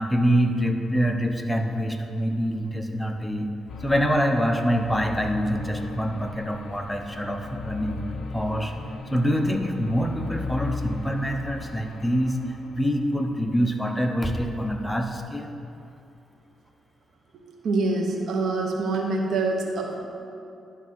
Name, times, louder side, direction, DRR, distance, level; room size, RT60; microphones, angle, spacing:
voice 1, 0.0-3.5 3.8-8.0 8.3-8.7 9.1-12.4 12.7-15.5, equal, 5° left, 4 dB, 0.8 m, -25 dB
sound 1, 3.7-13.3, left 3 dB, 70° left, 0.7 m, -37 dB
voice 2, 17.6-20.1, right 3 dB, 65° right, 0 dB, 1.0 m, -25 dB
10.5 x 3.6 x 6.2 m, 2.6 s
cardioid pair, 70°, 0 cm